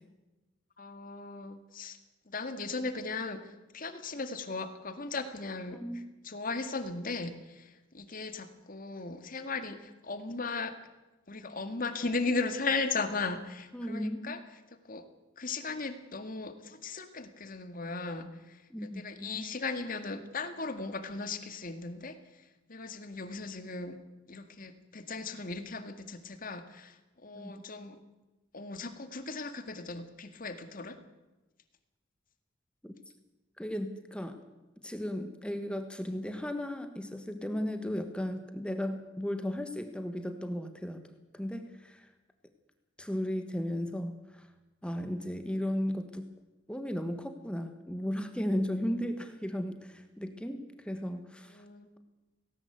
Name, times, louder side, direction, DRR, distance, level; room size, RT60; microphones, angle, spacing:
voice 1, 0.8-2.0 2.3-3.4 3.7-5.8 6.2-7.7 7.9-10.7 11.3-14.4 14.9-15.0 15.4-18.6 18.8-22.2 22.7-24.0 24.3-26.9 27.2-28.0 28.5-31.0 51.5-51.9, left 3 dB, 45° left, 9 dB, 1.9 m, -37 dB
voice 2, 5.7-6.1 13.7-14.4 18.7-19.5 27.3-27.6 32.8-32.9 33.6-34.4 34.8-41.0 41.3-42.1 43.0-44.5 44.8-46.3 46.7-51.6, equal, 5° left, 7 dB, 1.4 m, -35 dB
18.0 x 18.0 x 8.0 m, 1.1 s
head